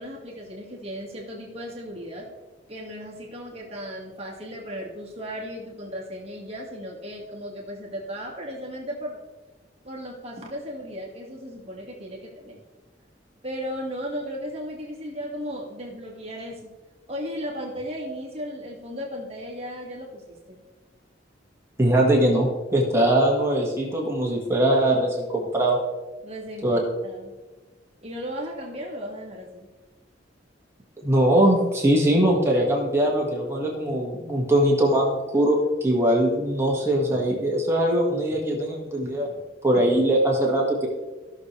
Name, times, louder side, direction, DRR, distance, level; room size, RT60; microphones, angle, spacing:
voice 1, 0.0-2.3 2.7-9.2 9.8-12.6 13.4-16.7 17.1-20.6 26.2-27.3 28.0-29.7, equal, 35° right, -2 dB, 2.0 m, -35 dB
voice 2, 21.8-25.8 26.6-26.8 31.0-39.3 39.6-40.9, right 1 dB, 15° right, -2 dB, 1.9 m, -21 dB
16.0 x 6.6 x 3.3 m, 1.2 s
head